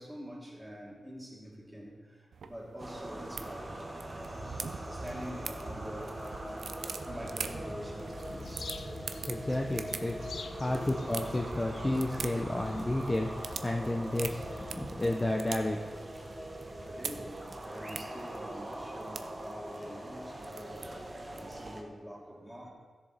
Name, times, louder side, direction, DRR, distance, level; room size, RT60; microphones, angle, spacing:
voice 1, 0.0-3.9 4.9-6.2 7.1-8.8 10.0-10.1 10.7-10.8 16.8-22.7, equal, 5° right, -4 dB, 2.5 m, -45 dB
sound 1, 2.3-21.7, right 5 dB, 80° right, 0.6 m, -45 dB
sound 2, 2.8-21.8, right 1 dB, 25° right, 1.2 m, -42 dB
sound 3, 8.2-14.7, left 5 dB, 70° left, 0.5 m, -47 dB
voice 2, 9.3-10.2 10.5-14.4 14.8-15.8, left 1 dB, 20° left, 2 dB, 0.6 m, -31 dB
16.0 x 7.1 x 4.1 m, 1.5 s
wide cardioid pair, 140°, 0 cm